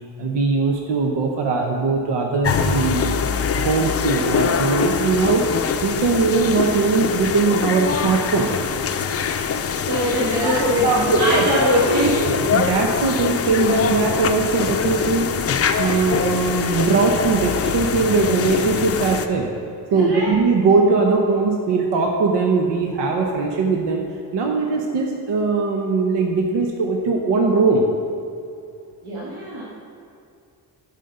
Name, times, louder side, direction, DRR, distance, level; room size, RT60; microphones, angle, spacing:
voice 1, 0.2-3.1 3.6-5.5 5.8-8.5 10.4-11.7 12.5-15.3 15.8-19.5 19.9-24.0 24.3-27.9, right 4 dB, 85° right, 2 dB, 0.9 m, -20 dB
sound 1, 2.4-19.3, left 6 dB, 35° left, 0.5 m, -23 dB
voice 2, 9.9-12.8 19.9-20.4 29.0-29.6, equal, 65° right, -6 dB, 2.0 m, -22 dB
11.5 x 5.4 x 5.4 m, 2.4 s
cardioid pair, 125°, 41 cm